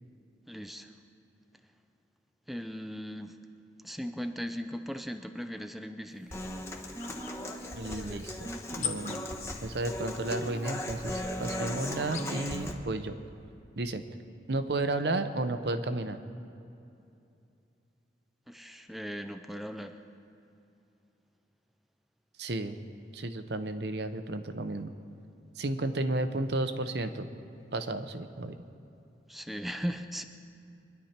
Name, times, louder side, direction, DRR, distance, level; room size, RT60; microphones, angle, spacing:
voice 1, 0.5-0.9 2.5-3.4 3.8-6.4 18.5-20.0 29.3-30.2, equal, ahead, 6 dB, 0.5 m, -38 dB
sound 1, 6.1-12.6, left 7 dB, 45° left, 1.0 m, -44 dB
Human voice / Acoustic guitar, 6.3-12.7, left 1 dB, 15° left, 1.1 m, -37 dB
voice 2, 7.7-8.5 8.8-9.2 9.6-13.2 13.8-14.0 14.5-16.2 22.4-22.8 23.1-24.9 25.6-27.3 27.7-28.6, right 2 dB, 65° right, 9 dB, 0.8 m, -32 dB
24.0 x 11.0 x 4.4 m, 2.7 s
head